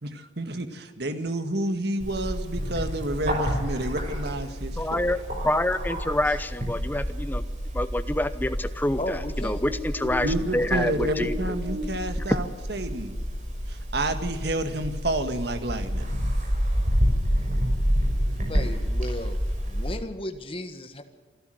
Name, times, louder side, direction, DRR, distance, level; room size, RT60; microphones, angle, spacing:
voice 1, 0.0-5.0 10.2-13.2 13.7-16.1, right 1 dB, 55° right, 8 dB, 1.8 m, -29 dB
Bird, 2.0-20.0, equal, 40° right, 5.9 m, -29 dB
voice 2, 4.8-7.4 7.7-11.5 12.3-12.4, left 1 dB, 10° left, 12 dB, 0.8 m, -27 dB
voice 3, 9.0-9.6 18.5-19.4 19.7-21.0, left 1 dB, 30° left, 7 dB, 1.6 m, -34 dB
27.5 x 12.5 x 7.8 m, 1.5 s
head